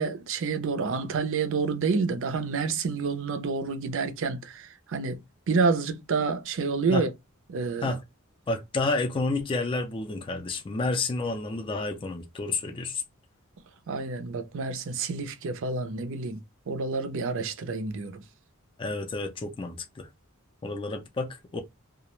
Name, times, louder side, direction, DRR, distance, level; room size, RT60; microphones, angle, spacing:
voice 1, 0.0-5.2 5.5-7.1 7.5-8.0 13.9-18.2, right 4 dB, 60° right, 0.5 m, -28 dB
voice 2, 8.5-13.0 18.8-20.1 20.6-21.6, left 3 dB, 25° left, 0.4 m, -30 dB
2.3 x 2.1 x 2.9 m
head